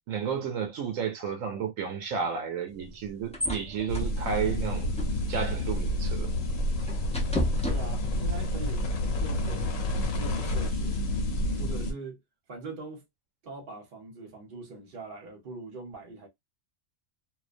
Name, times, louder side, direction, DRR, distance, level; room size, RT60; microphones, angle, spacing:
voice 1, 0.1-5.0 5.3-6.3, right 6 dB, 80° right, 1.0 m, -32 dB
sound 1, 2.7-8.4, left 1 dB, 10° left, 0.3 m, -36 dB
sound 2, 3.9-11.9, left 1 dB, 80° left, 1.2 m, -29 dB
voice 2, 7.6-11.0 11.6-12.2 12.5-13.0 13.4-16.3, right 3 dB, 45° right, 1.0 m, -42 dB
2.5 x 2.1 x 2.5 m
omnidirectional pair, 1.4 m